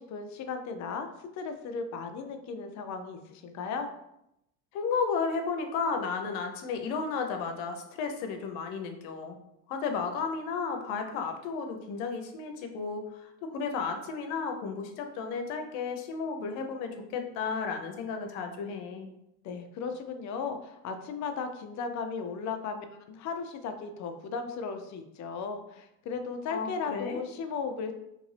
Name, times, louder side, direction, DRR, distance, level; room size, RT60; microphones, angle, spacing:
voice 1, 0.0-3.9 19.4-27.9, left 5 dB, 40° left, 7 dB, 0.4 m, -36 dB
voice 2, 4.7-9.4 9.7-19.1 26.5-27.2, left 5 dB, 80° left, 5 dB, 0.7 m, -33 dB
2.9 x 2.6 x 3.2 m, 0.83 s
supercardioid pair, 100°, 48 cm